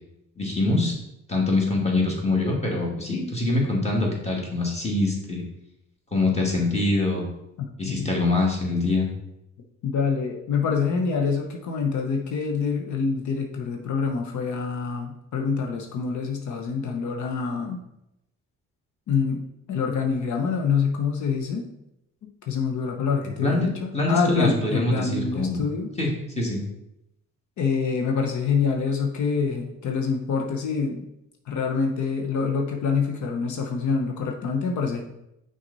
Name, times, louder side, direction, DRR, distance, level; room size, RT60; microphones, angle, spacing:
voice 1, 0.4-0.9 1.3-5.4 6.1-7.3 7.8-9.1 23.2-25.6 26.0-26.1 26.4-26.6, left 2 dB, 20° left, -2 dB, 2.0 m, -24 dB
voice 2, 7.6-8.1 9.8-17.8 19.1-21.7 22.5-25.9 27.6-31.0 31.5-35.0, left 5 dB, 70° left, 2 dB, 0.9 m, -26 dB
6.0 x 4.1 x 4.1 m, 0.85 s
cardioid pair, 90°, 30 cm